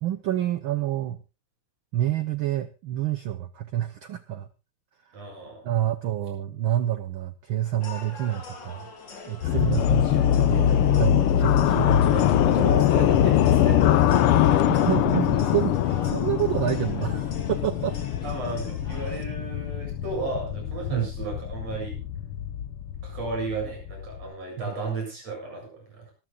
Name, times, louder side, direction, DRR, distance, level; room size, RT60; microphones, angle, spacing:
voice 1, 0.0-1.2 1.9-4.5 5.1-5.2 5.6-8.9 9.3-10.0 10.5-12.1 14.7-18.0 20.9-21.1 24.6-24.7, right 12 dB, 85° right, 11 dB, 1.1 m, -28 dB
voice 2, 5.1-5.7 9.7-11.0 11.6-14.9 18.2-22.0 23.0-26.1, right 3 dB, 60° right, 2 dB, 9.0 m, -35 dB
sound 1, 7.8-19.2, left 4 dB, 40° left, 3.0 m, -43 dB
sound 2, 9.4-24.3, left 10 dB, 70° left, 1.4 m, -23 dB
25.0 x 13.5 x 2.4 m, 0.30 s
omnidirectional pair, 3.3 m